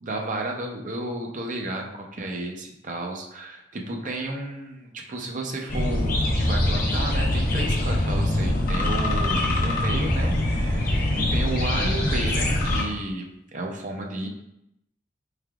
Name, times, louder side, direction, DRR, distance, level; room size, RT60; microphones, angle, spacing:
voice 1, 0.0-13.3 13.5-14.3, right 2 dB, 45° right, 1 dB, 0.6 m, -32 dB
sound 1, 5.7-12.8, left 1 dB, 50° left, 0.7 m, -23 dB
4.6 x 3.3 x 2.3 m, 0.84 s
head